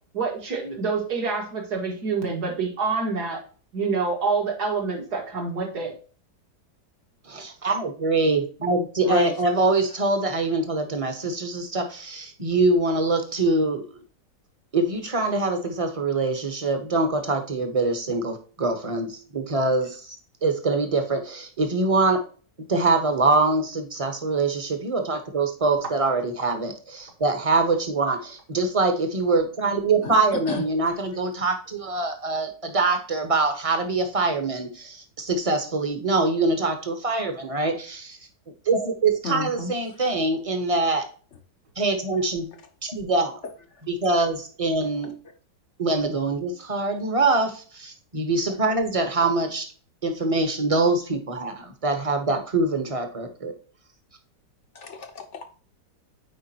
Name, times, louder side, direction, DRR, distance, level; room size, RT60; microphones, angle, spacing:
voice 1, 0.1-3.4 3.7-5.9, right 4 dB, 65° right, 2 dB, 2.3 m, -27 dB
voice 2, 7.2-13.8 14.7-20.2 20.4-22.2 22.7-38.2 38.6-41.0 41.8-42.5 42.8-43.4 43.8-45.2 45.8-49.7 50.0-53.5, right 3 dB, 20° right, 6 dB, 1.0 m, -24 dB
voice 3, 9.0-9.3 30.0-30.1 30.5-30.6 39.2-39.7 54.7-55.5, left 2 dB, 50° left, 6 dB, 1.0 m, -30 dB
8.7 x 4.9 x 2.9 m, 0.39 s
omnidirectional pair, 1.9 m